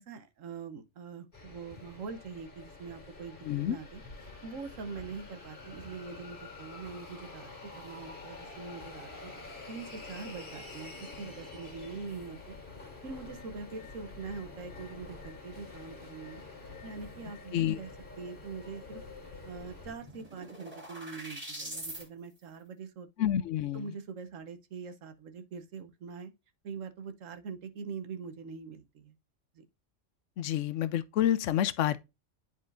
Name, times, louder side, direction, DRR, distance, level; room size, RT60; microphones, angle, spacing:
voice 1, 0.0-3.4 3.7-4.0 4.4-7.5 7.7-12.6 13.0-16.4 16.8-17.9 18.2-19.0 19.4-23.1 23.7-26.3 26.6-29.1 29.5-29.6, right 5 dB, 85° right, 1.3 m, -43 dB
sound 1, 1.3-19.9, left 3 dB, 45° left, 2.1 m, -47 dB
voice 2, 3.5-3.8 17.5-17.8 23.2-23.9 30.4-32.0, left 11 dB, 75° left, 0.9 m, -28 dB
sound 2, 19.5-22.0, right 1 dB, 30° right, 2.6 m, -43 dB
10.0 x 4.2 x 2.5 m
omnidirectional pair, 1.3 m